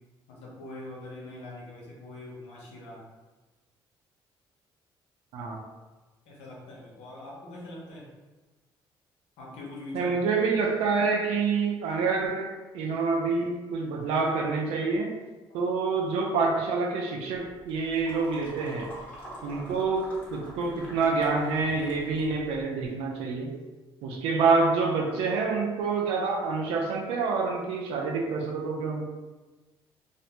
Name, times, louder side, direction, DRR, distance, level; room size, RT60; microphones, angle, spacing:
voice 1, 0.3-3.0 6.3-8.1 9.4-10.2 15.5-15.7 18.5-18.8 19.3-19.6, left 1 dB, 90° left, -4 dB, 0.8 m, -43 dB
voice 2, 9.9-12.5 12.7-15.1 15.5-18.9 19.4-20.0 20.3-23.5 24.0-29.0, right 4 dB, 90° right, 1 dB, 0.5 m, -27 dB
sound 1, 17.3-22.6, equal, 15° left, 1.0 m, -45 dB
2.5 x 2.1 x 2.8 m, 1.2 s
cardioid pair, 85°, 10 cm